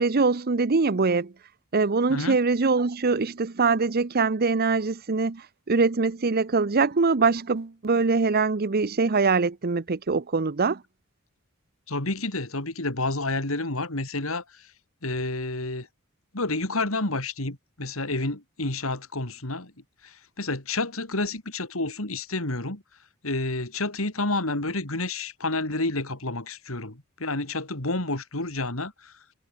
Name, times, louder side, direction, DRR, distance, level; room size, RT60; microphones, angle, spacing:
voice 1, 0.0-1.3 1.7-10.8, right 4 dB, 45° right, 0.8 m, -23 dB
voice 2, 11.9-14.7 15.0-15.9 16.3-19.7 20.0-22.8 23.2-29.1, left 2 dB, 75° left, 4.1 m, -29 dB
head